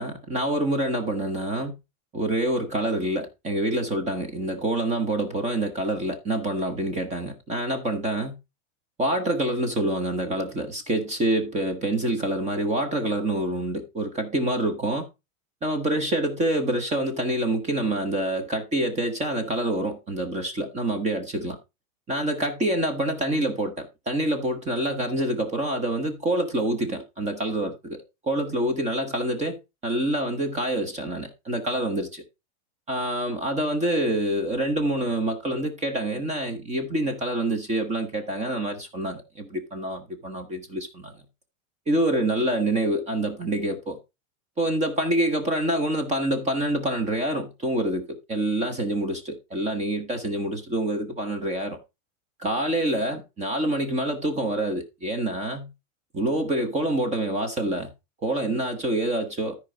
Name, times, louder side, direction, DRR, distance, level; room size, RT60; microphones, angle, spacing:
voice 1, 0.0-1.7 2.1-8.4 9.0-15.0 15.6-21.6 22.1-28.0 28.2-32.2 32.9-41.1 41.9-44.0 44.6-51.8 52.4-55.7 56.1-57.9 58.2-59.6, right 1 dB, 15° right, 1.0 m, -26 dB
14.0 x 4.7 x 3.9 m
supercardioid pair, 160°, 44 cm